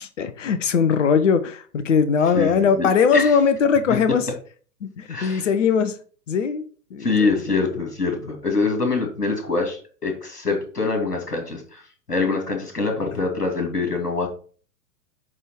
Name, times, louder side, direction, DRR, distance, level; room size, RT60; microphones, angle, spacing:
voice 1, 0.0-4.2 4.8-5.9 6.3-6.6 6.9-7.4, left 6 dB, 50° left, 11 dB, 1.1 m, -20 dB
voice 2, 2.3-3.4 3.9-4.0 5.1-5.5 7.0-11.8 12.1-14.3, left 4 dB, 80° left, 3 dB, 2.7 m, -24 dB
8.2 x 3.6 x 5.8 m, 0.41 s
figure-of-eight pair, 110°, 46 cm